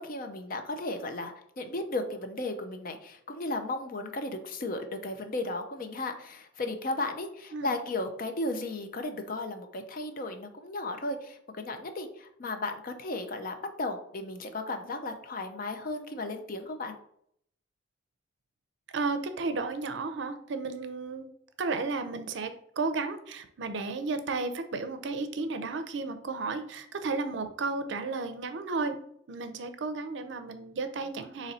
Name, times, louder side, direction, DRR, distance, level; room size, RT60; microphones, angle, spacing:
voice 1, 0.0-17.0, left 2 dB, 45° left, 6 dB, 0.5 m, -35 dB
voice 2, 18.9-21.3 21.6-29.0 29.3-31.5, right 3 dB, 65° right, 9 dB, 0.5 m, -33 dB
4.0 x 3.0 x 4.1 m, 0.69 s
head